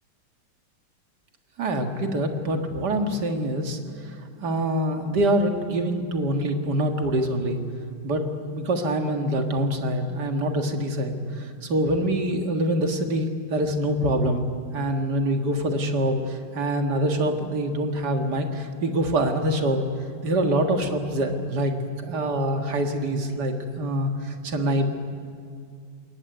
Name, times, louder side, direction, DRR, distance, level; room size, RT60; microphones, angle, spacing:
voice 1, 1.6-3.8 4.4-7.6 8.0-14.4 14.7-19.8 20.2-21.8 22.1-24.9, right 1 dB, 60° right, 4 dB, 2.3 m, -25 dB
21.0 x 18.0 x 9.5 m, 2.2 s
omnidirectional pair, 2.0 m